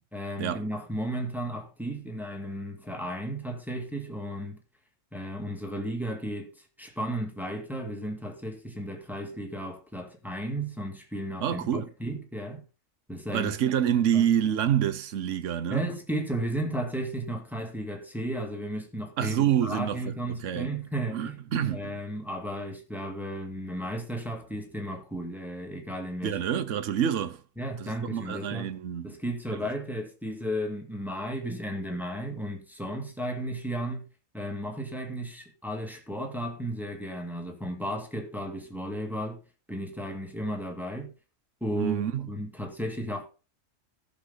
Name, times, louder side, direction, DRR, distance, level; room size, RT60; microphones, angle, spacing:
voice 1, 0.1-4.6 5.1-12.6 13.1-13.5 14.1-14.3 15.7-21.4 21.7-26.4 27.6-28.7 29.0-34.1 34.3-39.4 39.7-41.1 41.6-43.3, right 1 dB, ahead, 2.0 m, -34 dB
voice 2, 11.4-11.9 13.3-15.9 19.2-20.0 20.4-20.8 21.1-21.9 26.2-27.4 27.8-29.2 41.7-42.3, right 9 dB, 70° right, 1.2 m, -27 dB
15.0 x 6.7 x 3.9 m
omnidirectional pair, 1.4 m